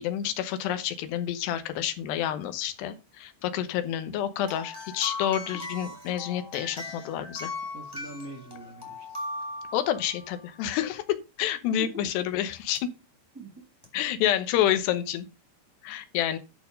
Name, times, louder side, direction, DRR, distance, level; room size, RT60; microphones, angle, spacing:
voice 1, 0.0-7.5 9.7-12.9 13.9-15.3 15.8-16.4, left 11 dB, 85° left, 3.1 m, -29 dB
sound 1, 4.4-10.4 12.8-12.9 13.8-13.9, left 2 dB, 5° left, 2.8 m, -38 dB
voice 2, 7.7-9.2 11.8-12.1 13.3-13.6, right 1 dB, 20° right, 0.4 m, -42 dB
11.0 x 4.8 x 5.2 m
omnidirectional pair, 4.8 m